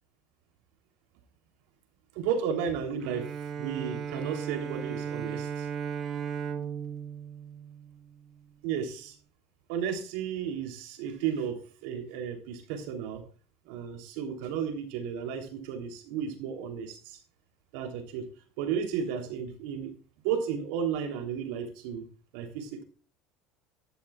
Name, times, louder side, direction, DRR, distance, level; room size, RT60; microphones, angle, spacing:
voice 1, 2.1-3.3 3.6-5.7 8.6-9.1 9.7-13.2 13.7-17.2 17.7-18.3 18.6-19.9 20.2-22.0 22.3-22.8, right 7 dB, 75° right, 5 dB, 3.2 m, -33 dB
Bowed string instrument, 3.0-8.4, right 7 dB, 35° right, 1.1 m, -36 dB
12.5 x 12.0 x 2.4 m, 0.39 s
supercardioid pair, 135°, 0 cm